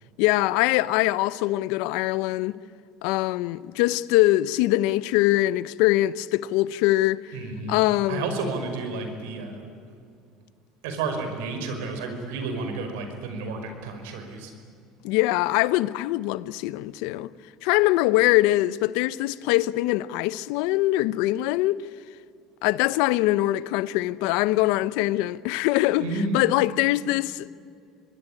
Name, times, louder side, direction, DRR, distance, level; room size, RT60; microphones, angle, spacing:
voice 1, 0.2-2.6 3.0-7.3 7.7-8.2 15.0-17.3 17.6-21.8 22.6-26.1 26.3-27.5, left 17 dB, 75° left, 0.8 m, -23 dB
voice 2, 7.3-7.8 8.1-9.7 10.8-14.5 26.0-26.4, right 3 dB, 85° right, 5.4 m, -31 dB
25.0 x 22.0 x 10.0 m
supercardioid pair, 100°, 0 cm